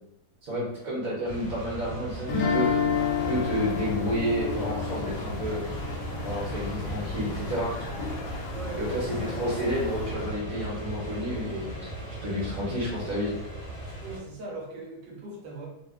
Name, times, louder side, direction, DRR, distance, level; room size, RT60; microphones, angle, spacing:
voice 1, 0.4-2.7 3.3-5.6 6.2-7.7 8.8-11.9 12.2-13.3, equal, 55° right, -6 dB, 1.4 m, -30 dB
sound 1, 1.2-14.2, right 1 dB, 25° left, 0.9 m, -37 dB
sound 2, 2.3-7.2, left 6 dB, 60° left, 0.9 m, -30 dB
sound 3, 2.9-10.3, left 3 dB, 80° left, 1.3 m, -39 dB
voice 2, 8.5-9.4 14.0-15.7, right 2 dB, 80° right, -2 dB, 1.6 m, -40 dB
3.2 x 2.5 x 3.5 m, 0.84 s
omnidirectional pair, 1.9 m